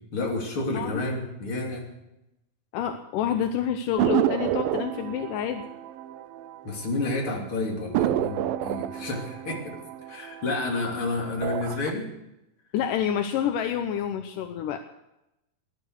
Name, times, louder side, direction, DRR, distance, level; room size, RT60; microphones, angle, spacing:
voice 1, 0.1-1.9 6.6-9.8 10.1-12.1, left 2 dB, 40° left, 0 dB, 3.6 m, -30 dB
voice 2, 2.7-5.7 12.7-14.8, left 9 dB, 80° left, 7 dB, 2.3 m, -28 dB
sound 1, 4.0-7.0 7.3-7.4 7.9-10.9 11.3-11.9, right 12 dB, 90° right, 2.5 m, -29 dB
18.5 x 11.0 x 6.5 m, 0.90 s
omnidirectional pair, 4.0 m